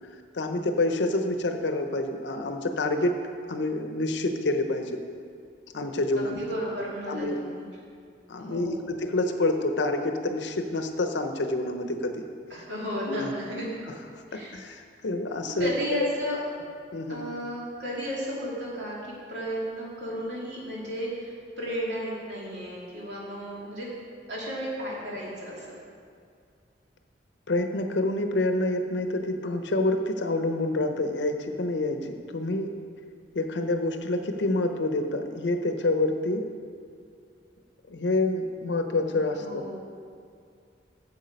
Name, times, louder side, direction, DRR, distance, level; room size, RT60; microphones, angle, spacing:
voice 1, 0.3-3.2 3.5-5.0 5.7-6.5 7.1-7.4 8.3-12.2 13.1-13.3 14.1-15.7 16.0-16.1 16.9-17.3 27.5-32.7 33.3-36.5 37.9-39.7, left 2 dB, 75° left, 6 dB, 0.7 m, -27 dB
voice 2, 6.2-7.6 8.4-8.8 12.5-13.7 14.3-14.6 15.6-16.4 17.1-23.9 24.3-25.7 39.3-39.7, equal, 70° right, -5 dB, 2.5 m, -33 dB
8.2 x 7.2 x 5.2 m, 2.2 s
head